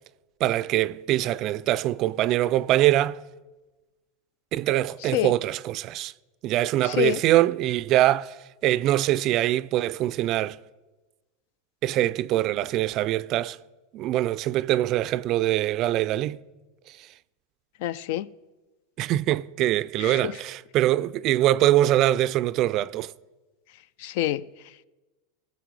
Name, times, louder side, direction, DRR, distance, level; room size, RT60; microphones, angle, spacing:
voice 1, 0.4-3.2 4.5-6.1 6.4-8.4 8.6-10.6 11.8-13.6 13.9-16.4 19.0-23.1, right 14 dB, 45° right, 0.4 m, -23 dB
voice 2, 5.0-5.3 6.8-7.2 17.8-18.3 20.0-20.4 24.0-24.5, left 13 dB, 65° left, 0.4 m, -27 dB
19.0 x 7.2 x 4.7 m
supercardioid pair, 120°, 0 cm